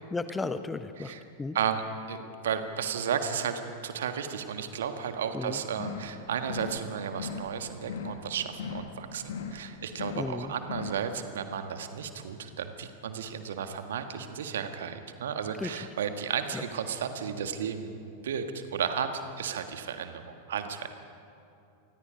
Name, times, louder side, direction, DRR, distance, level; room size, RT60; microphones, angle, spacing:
voice 1, 0.1-1.6 5.3-5.6 10.1-10.5 15.6-15.9 16.5-16.6, left 3 dB, 10° left, 11 dB, 0.9 m, -34 dB
voice 2, 2.4-20.9, right 7 dB, 60° right, 7 dB, 1.6 m, -33 dB
sound 1, 5.7-6.2 6.4-6.8 7.1-7.6 7.8-8.3 8.5-9.0 9.2-9.6 9.9-10.4 10.6-11.0, left 6 dB, 60° left, 1.7 m, -38 dB
26.5 x 20.5 x 5.1 m, 2.7 s
figure-of-eight pair, 90°, 0 cm